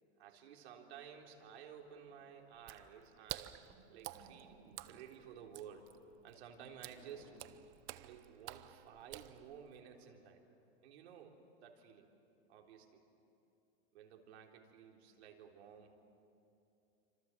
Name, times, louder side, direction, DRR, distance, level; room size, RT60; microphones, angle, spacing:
voice 1, 0.2-6.0 6.2-7.4 8.0-10.4 10.8-12.1 12.5-13.0 13.9-15.9, right 8 dB, 75° right, 1 dB, 3.7 m, -55 dB
sound 1, 1.8-10.1, right 1 dB, 5° left, 7.2 m, -66 dB
Water / Splash splatter, 2.6-9.8, right 16 dB, 35° right, 0.8 m, -51 dB
29.0 x 26.0 x 7.4 m, 2.7 s
supercardioid pair, 145°, 32 cm